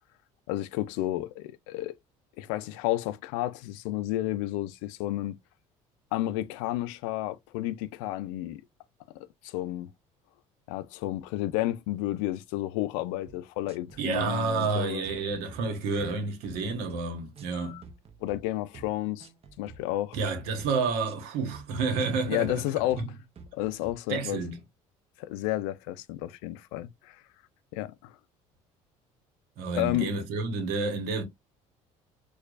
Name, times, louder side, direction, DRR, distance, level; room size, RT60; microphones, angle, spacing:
voice 1, 0.5-2.0 2.4-5.4 6.1-8.6 9.1-9.9 10.7-15.0 17.5-17.8 18.2-19.3 19.6-20.2 22.3-23.0 23.5-24.4 25.2-27.2 27.7-28.2 29.7-30.2, left 15 dB, 80° left, 0.4 m, -31 dB
sound 1, 13.3-13.4 13.7-14.2 14.6-14.8 15.1-15.6 16.0-16.2 16.4-17.0 17.4-17.5 17.8-18.4 18.7-18.9 19.2-19.8 20.1-20.3 20.6-21.2 21.5-21.7 22.0-22.6 22.9-23.1 23.4-23.9, right 4 dB, 40° right, 0.8 m, -48 dB
voice 2, 14.0-17.8 20.1-22.5 23.0-23.1 24.1-24.6 29.6-31.2, right 4 dB, 75° right, 1.2 m, -29 dB
4.5 x 2.4 x 2.4 m
hypercardioid pair, 70°, 16 cm